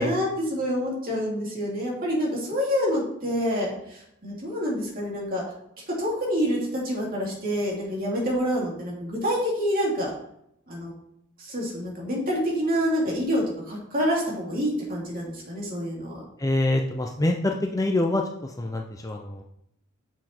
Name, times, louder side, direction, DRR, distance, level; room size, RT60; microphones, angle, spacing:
voice 1, 0.0-5.4 5.9-10.1 10.7-10.9 11.4-16.2, equal, 40° right, -3 dB, 2.7 m, -27 dB
voice 2, 16.4-19.4, left 1 dB, 15° left, 2 dB, 0.5 m, -25 dB
7.1 x 6.1 x 4.4 m, 0.76 s
head